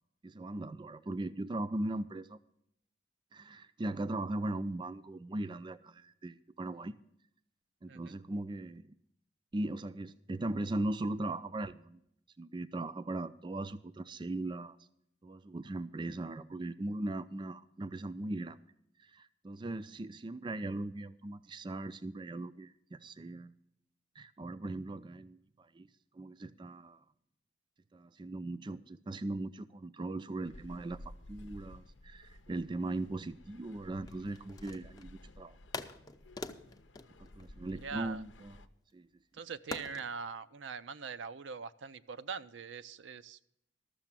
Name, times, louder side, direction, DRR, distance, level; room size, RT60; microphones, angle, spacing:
voice 1, 0.2-2.4 3.3-6.9 7.8-8.9 9.5-12.0 12.4-14.8 15.2-18.6 19.0-23.5 24.2-25.9 26.1-27.0 27.9-35.6 37.4-38.6 38.9-39.1, right 2 dB, 25° right, 13 dB, 0.4 m, -39 dB
voice 2, 7.9-8.2 37.7-38.2 39.3-43.4, right 5 dB, 80° right, 12 dB, 0.5 m, -42 dB
sound 1, 30.4-38.7, left 1 dB, 85° left, 0.7 m, -54 dB
sound 2, 34.1-35.2 35.7-38.2 39.7-40.1, left 3 dB, 20° left, 0.6 m, -44 dB
13.5 x 6.9 x 7.4 m, 0.74 s
head